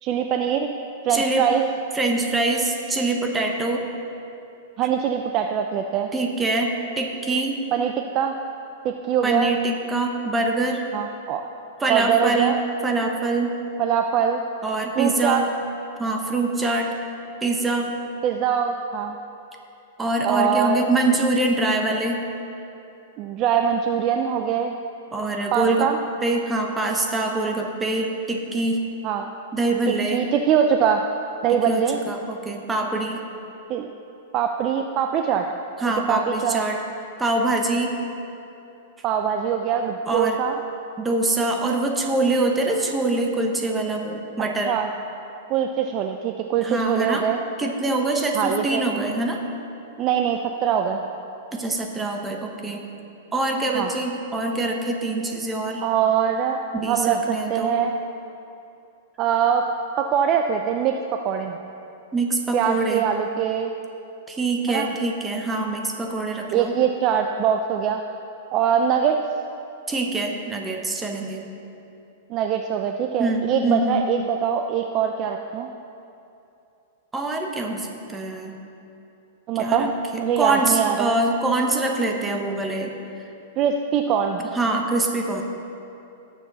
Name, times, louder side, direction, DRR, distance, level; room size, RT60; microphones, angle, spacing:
voice 1, 0.0-0.7 1.1-1.7 4.8-6.1 7.7-8.3 8.8-9.5 10.9-11.4 11.9-12.6 13.8-14.4 15.0-15.5 18.2-19.2 20.2-20.9 23.2-24.8 25.5-26.0 29.0-29.3 29.9-31.0 31.4-32.1 33.7-33.9 34.3-35.5 36.1-36.6 39.0-40.6 44.7-44.9 45.5-47.4 48.3-48.9 50.0-51.1 53.7-53.9 55.8-56.6 56.9-57.9 59.2-59.7 60.0-61.5 62.5-63.7 64.7-64.9 66.5-68.0 68.5-69.2 72.3-75.7 79.5-81.2 83.6-84.4, right 8 dB, 35° right, 5 dB, 0.5 m, -23 dB
voice 2, 1.1-1.5 1.9-3.9 6.1-7.6 9.2-10.8 11.8-13.6 14.6-15.5 16.0-16.9 17.4-18.0 20.0-22.2 25.1-25.9 26.2-28.8 29.5-30.2 31.5-33.2 35.8-36.8 37.2-37.9 40.1-40.4 41.0-44.7 46.6-47.3 47.6-49.4 51.5-52.9 53.3-55.9 56.7-57.8 62.1-63.0 64.3-66.7 69.9-71.4 73.2-74.1 77.1-78.6 79.6-79.9 80.1-82.9 84.5-85.4, right 2 dB, 10° right, 2 dB, 1.1 m, -24 dB
17.5 x 7.0 x 4.1 m, 2.8 s
hypercardioid pair, 145°, 0 cm